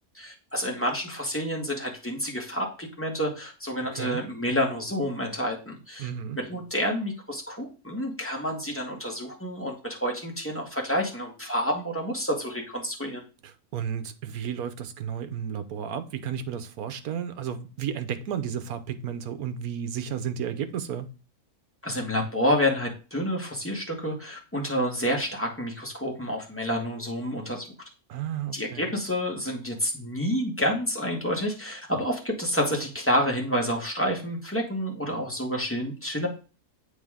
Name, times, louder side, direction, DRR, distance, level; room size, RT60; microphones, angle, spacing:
voice 1, 0.1-6.1 6.3-13.2 21.8-27.7 28.5-36.3, equal, 10° left, 1.6 m, -29 dB
voice 2, 6.0-6.4 13.7-21.1 28.1-28.8, right 8 dB, 75° right, 1.3 m, -32 dB
8.5 x 3.5 x 3.6 m
omnidirectional pair, 1.6 m